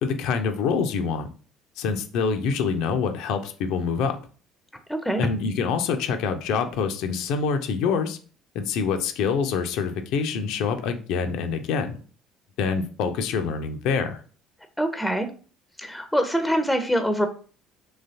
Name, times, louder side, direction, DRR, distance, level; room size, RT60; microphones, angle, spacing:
voice 1, 0.0-1.3 1.8-4.2 5.2-8.2 8.5-12.0 12.6-14.2, left 5 dB, 60° left, 7 dB, 0.5 m, -26 dB
voice 2, 4.9-5.2 14.8-15.3 15.8-17.3, equal, 5° left, 8 dB, 0.6 m, -24 dB
3.9 x 3.0 x 2.7 m, 0.40 s
figure-of-eight pair, 55°, 0 cm